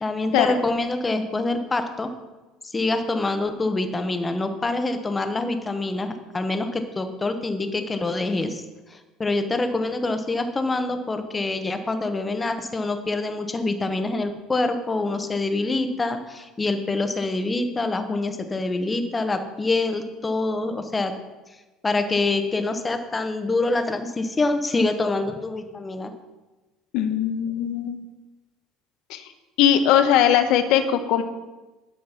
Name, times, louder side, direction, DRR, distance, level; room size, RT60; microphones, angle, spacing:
voice 1, 0.0-2.1 2.6-8.6 8.9-21.1 21.8-26.1, left 2 dB, 15° left, 7 dB, 0.9 m, -25 dB
voice 2, 26.9-28.1 29.1-29.2 29.6-31.2, left 10 dB, 65° left, 8 dB, 1.0 m, -20 dB
11.5 x 6.6 x 5.7 m, 1.2 s
cardioid pair, 155°, 0 cm